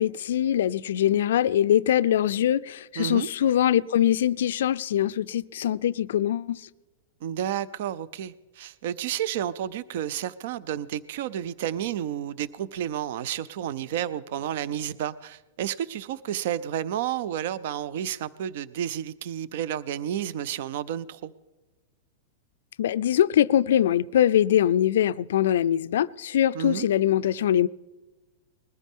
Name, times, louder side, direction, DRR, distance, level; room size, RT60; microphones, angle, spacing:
voice 1, 0.0-6.6 22.8-27.7, left 11 dB, 70° left, 0.4 m, -23 dB
voice 2, 3.0-3.3 7.2-21.3 26.5-26.9, right 10 dB, 50° right, 0.4 m, -31 dB
21.0 x 14.5 x 3.6 m
supercardioid pair, 175°, 0 cm